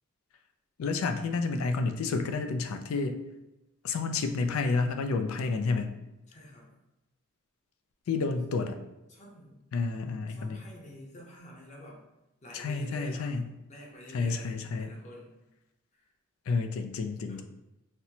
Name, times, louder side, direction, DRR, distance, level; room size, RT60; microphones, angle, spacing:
voice 1, 0.8-3.2 3.8-5.9 8.1-8.8 9.7-10.6 12.5-13.5 14.1-15.0 16.5-17.4, left 4 dB, 85° left, 6 dB, 0.4 m, -30 dB
voice 2, 6.3-6.7 9.1-9.6 10.3-12.0 12.4-13.3 13.7-15.4 15.9-16.0 17.3-17.4, equal, 35° left, -2 dB, 0.7 m, -48 dB
4.2 x 2.1 x 2.7 m, 0.95 s
head